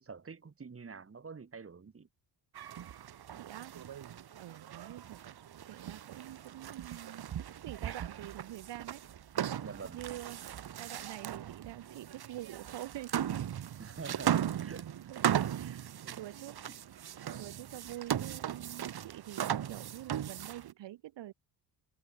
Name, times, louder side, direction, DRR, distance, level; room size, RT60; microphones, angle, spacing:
voice 1, 0.0-2.1 9.6-10.0 13.8-14.9 15.6-16.2, right 5 dB, 30° right, 6.1 m, -47 dB
sound 1, 2.6-20.7, right 10 dB, 60° right, 5.1 m, -37 dB
voice 2, 3.3-3.8 4.4-5.2 5.6-9.0 9.9-10.5 10.8-13.5 15.0-15.2 15.5-15.8 16.2-16.6 17.4-21.3, right 14 dB, 85° right, 4.9 m, -46 dB
cardioid pair, 105°, 42 cm